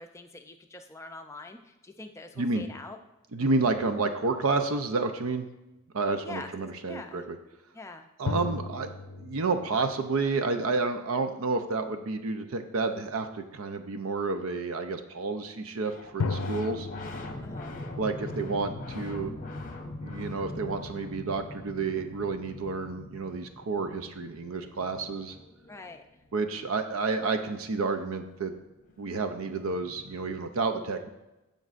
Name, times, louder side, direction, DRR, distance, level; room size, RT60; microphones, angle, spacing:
voice 1, 0.0-3.0 6.2-6.5 6.9-7.2 7.7-8.0 17.4-17.8 25.7-26.0, left 3 dB, 15° left, 5 dB, 0.5 m, -44 dB
voice 2, 3.3-5.5 5.9-7.4 8.2-8.9 9.2-16.9 18.0-19.4 20.0-25.4 26.3-28.5 29.0-31.1, right 3 dB, 75° right, 7 dB, 0.6 m, -30 dB
sound 1, 3.6-5.3 8.3-10.9 16.2-19.2, left 4 dB, 85° left, 0.5 m, -37 dB
sound 2, 15.8-26.2 28.3-28.4 28.6-30.4, left 2 dB, 40° left, 0.8 m, -42 dB
15.5 x 5.2 x 2.5 m, 1.0 s
head